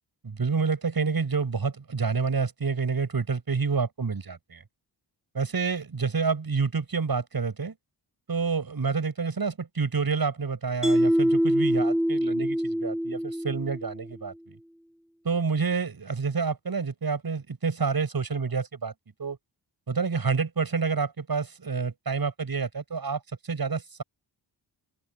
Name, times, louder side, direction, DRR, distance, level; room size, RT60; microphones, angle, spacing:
voice 1, 0.2-4.6 5.3-7.7 8.3-14.6 15.2-18.9 19.2-19.4 19.9-24.0, right 5 dB, 50° right, 8.0 m, -28 dB
Mallet percussion, 10.8-14.1, equal, ahead, 0.5 m, -24 dB
open air
wide cardioid pair, 150°, 45 cm